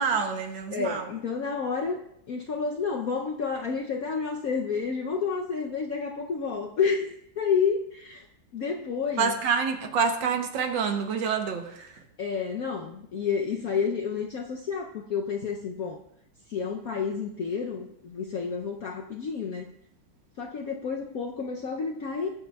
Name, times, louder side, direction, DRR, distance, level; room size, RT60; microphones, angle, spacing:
voice 1, 0.0-1.1 9.2-12.0, right 6 dB, 70° right, 5 dB, 1.6 m, -27 dB
voice 2, 0.7-2.0 2.3-8.3 8.5-9.3 12.2-16.0 16.5-19.7 20.4-22.3, left 5 dB, 65° left, 2 dB, 0.9 m, -30 dB
20.5 x 7.8 x 2.3 m, 0.77 s
omnidirectional pair, 2.2 m